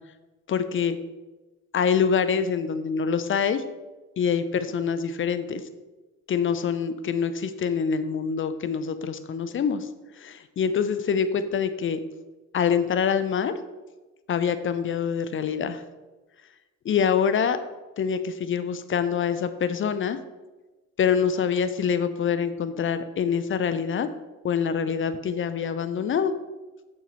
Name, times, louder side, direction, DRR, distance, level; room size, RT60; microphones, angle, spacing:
voice 1, 0.5-1.0 1.7-3.6 4.2-5.6 6.3-9.9 10.2-12.0 12.5-13.5 14.3-15.8 16.8-17.6 18.0-20.2 21.0-24.1 24.4-26.3, left 7 dB, 30° left, 11 dB, 0.5 m, -25 dB
6.5 x 6.3 x 3.0 m, 1.2 s
figure-of-eight pair, 45°, 42 cm